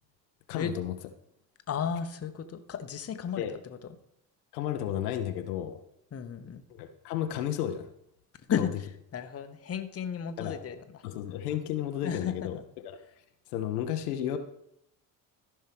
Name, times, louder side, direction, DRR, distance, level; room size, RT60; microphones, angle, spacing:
voice 1, 0.5-0.9 3.4-3.5 4.5-5.8 6.7-7.9 8.6-8.7 10.4-10.6 11.0-12.6 12.8-13.0 13.5-14.4, left 11 dB, 80° left, 7 dB, 0.8 m, -32 dB
voice 2, 1.7-4.0 6.1-6.6 8.5-11.0 12.0-12.6, left 7 dB, 30° left, 9 dB, 0.9 m, -34 dB
14.0 x 5.5 x 3.5 m, 0.76 s
hypercardioid pair, 55°, 45 cm